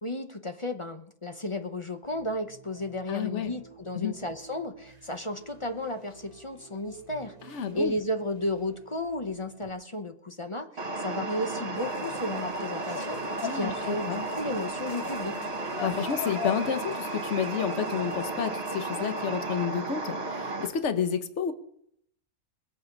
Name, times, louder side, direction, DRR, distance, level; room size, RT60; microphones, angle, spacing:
voice 1, 0.0-15.4, left 1 dB, 25° left, 7 dB, 0.9 m, -33 dB
sound 1, 2.0-9.7, right 4 dB, 25° right, 1.6 m, -53 dB
voice 2, 3.1-3.5 3.9-4.1 7.4-7.9 13.4-14.2 15.8-21.5, left 7 dB, 55° left, 9 dB, 1.4 m, -30 dB
sound 2, 10.8-20.7, right 2 dB, 45° right, 1.8 m, -34 dB
sound 3, 11.8-18.3, left 7 dB, 75° left, 1.5 m, -41 dB
21.0 x 8.6 x 5.3 m, 0.68 s
omnidirectional pair, 1.6 m